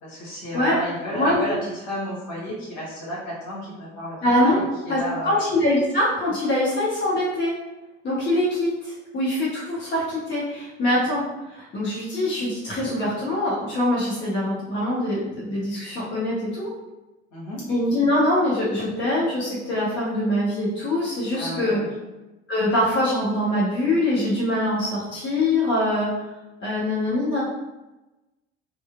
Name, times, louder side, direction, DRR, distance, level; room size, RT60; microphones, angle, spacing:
voice 1, 0.0-5.4 17.3-17.6 21.3-21.9, equal, 60° left, -7 dB, 1.3 m, -32 dB
voice 2, 4.2-4.6 4.9-7.5 8.0-11.2 11.5-16.7 17.7-21.8 22.5-26.1 26.6-27.4, left 1 dB, 35° left, -7 dB, 0.9 m, -23 dB
2.9 x 2.2 x 2.4 m, 1.0 s
figure-of-eight pair, 60°, 33 cm